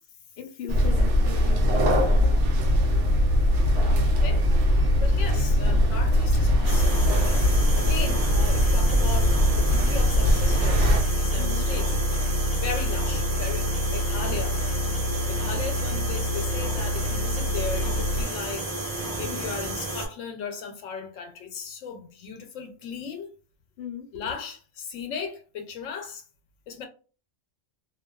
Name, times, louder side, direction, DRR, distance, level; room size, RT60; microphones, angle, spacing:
voice 1, 0.4-1.6 11.4-11.7 19.2-19.5 23.8-24.2, left 7 dB, 60° left, 0.7 m, -38 dB
sound 1, 0.7-11.0, equal, 70° right, 0.9 m, -21 dB
sound 2, 2.6-18.3, left 1 dB, 90° right, 1.2 m, -27 dB
voice 2, 3.7-7.5 7.8-12.0 12.6-14.6 15.3-18.7 19.2-23.3 24.1-26.2 26.7-26.9, left 6 dB, 85° left, 1.0 m, -37 dB
sound 3, 6.6-20.1, right 2 dB, 20° right, 0.6 m, -32 dB
2.5 x 2.2 x 2.2 m
omnidirectional pair, 1.3 m